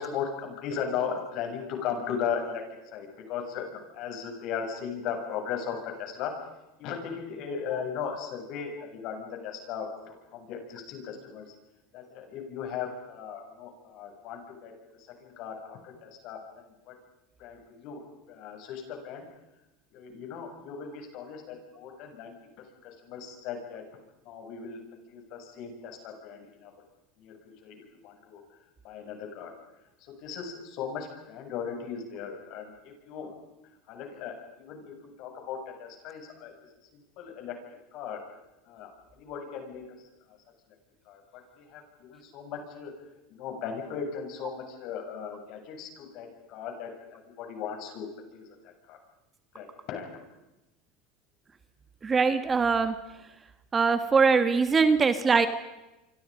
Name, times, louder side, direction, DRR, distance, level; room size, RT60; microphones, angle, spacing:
voice 1, 0.0-2.6 2.9-6.3 6.8-11.5 11.9-14.7 15.2-16.4 16.9-17.0 17.4-18.0 18.3-19.2 19.9-22.3 22.8-23.8 24.2-24.8 25.1-26.7 27.2-28.4 28.8-29.5 30.2-33.3 33.9-36.5 36.9-37.6 37.9-38.2 38.7-39.8 41.1-41.2 41.6-42.9 43.3-48.1 48.3-49.0 49.5-50.1, left 7 dB, 55° left, 3 dB, 7.6 m, -37 dB
voice 2, 52.0-52.9 53.7-55.5, right 5 dB, 20° right, 9 dB, 1.7 m, -22 dB
28.0 x 25.0 x 5.3 m, 0.98 s
supercardioid pair, 135°, 0 cm